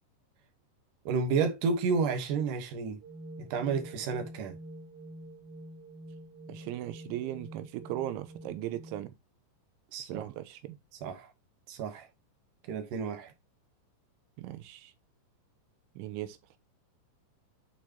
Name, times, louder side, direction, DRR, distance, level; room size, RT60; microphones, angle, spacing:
voice 1, 1.1-3.0 3.4-4.6 9.9-10.3 11.0-11.3 11.7-12.1 12.7-13.3, right 5 dB, 70° right, 2.0 m, -31 dB
sound 1, 3.0-9.0, right 1 dB, 45° right, 2.0 m, -47 dB
voice 2, 6.5-9.1 10.1-10.8 14.4-14.9 16.0-16.4, right 13 dB, 90° right, 3.2 m, -38 dB
9.2 x 4.7 x 2.9 m
omnidirectional pair, 5.4 m